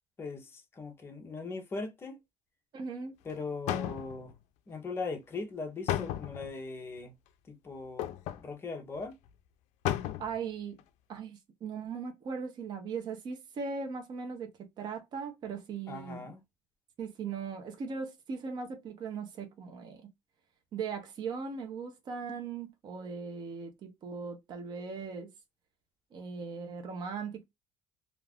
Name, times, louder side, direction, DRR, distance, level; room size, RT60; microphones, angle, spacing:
voice 1, 0.2-2.2 3.2-4.3 4.7-7.1 7.5-9.1 15.9-16.4, left 3 dB, 20° left, 0.6 m, -40 dB
voice 2, 2.7-3.1 10.2-10.8 11.1-16.3 17.0-20.1 20.7-25.3 26.1-27.4, right 5 dB, 35° right, 0.6 m, -39 dB
sound 1, 3.3-3.4 3.7-4.4 5.9-6.5 8.0-8.4 9.0-9.1 9.3-9.4 9.8-10.4 10.8-10.9, left 12 dB, 65° left, 0.4 m, -33 dB
2.4 x 2.3 x 3.3 m
cardioid pair, 180°, 12 cm